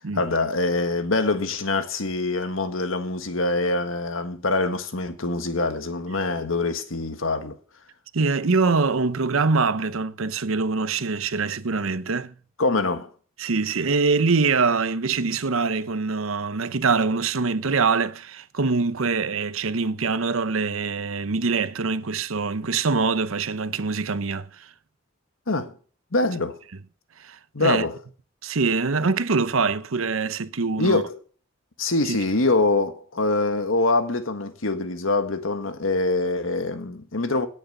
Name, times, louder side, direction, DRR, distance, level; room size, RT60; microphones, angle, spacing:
voice 1, 0.1-7.6 12.6-13.1 25.5-25.7 26.1-26.6 27.5-28.0 30.8-31.2 31.8-37.5, left 2 dB, 80° left, 1.6 m, -24 dB
voice 2, 8.1-12.3 13.4-24.7 27.2-27.9 28.4-31.0 32.1-32.2, right 4 dB, 85° right, 0.8 m, -24 dB
17.0 x 6.4 x 6.6 m
head